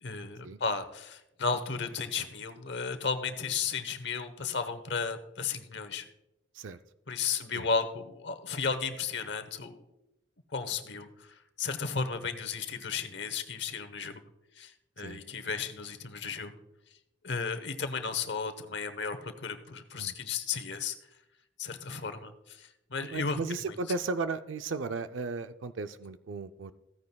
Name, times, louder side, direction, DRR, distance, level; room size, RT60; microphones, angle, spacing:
voice 1, 0.0-6.1 7.1-9.8 10.5-14.2 14.6-16.5 17.2-20.9 21.6-23.4 23.7-23.8, left 5 dB, 65° left, 10 dB, 0.9 m, -34 dB
voice 2, 23.0-26.7, right 3 dB, 80° right, 10 dB, 0.4 m, -35 dB
15.5 x 9.5 x 2.3 m, 0.89 s
head